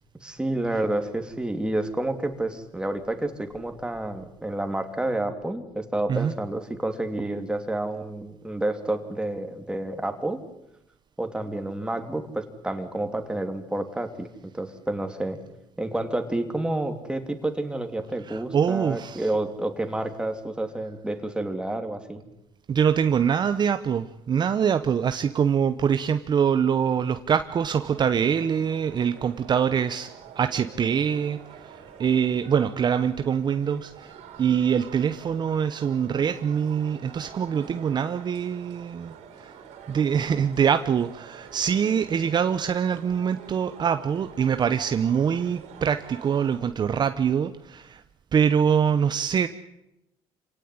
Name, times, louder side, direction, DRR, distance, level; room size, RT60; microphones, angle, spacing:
voice 1, 0.2-10.4 11.2-14.3 14.5-15.4 15.8-22.2, right 1 dB, 10° right, 6 dB, 3.1 m, -29 dB
voice 2, 18.3-19.3 22.7-30.1 30.4-39.5 39.9-48.0 48.3-49.5, right 7 dB, 40° right, 10 dB, 1.0 m, -24 dB
sound 1, 27.8-46.6, right 7 dB, 75° right, 4.3 m, -47 dB
27.0 x 17.5 x 9.7 m, 0.88 s
cardioid pair, 105°, 11 cm